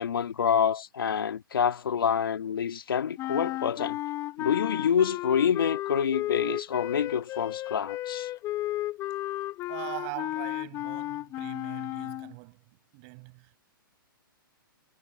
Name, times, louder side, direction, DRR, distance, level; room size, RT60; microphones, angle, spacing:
voice 1, 0.0-4.0 4.4-8.3, left 7 dB, 75° left, 2.0 m, -27 dB
sound 1, 3.2-12.3, left 15 dB, 25° left, 0.7 m, -33 dB
voice 2, 9.7-12.6 12.9-13.6, right 37 dB, 40° right, 5.8 m, -41 dB
hypercardioid pair, 130°, 12 cm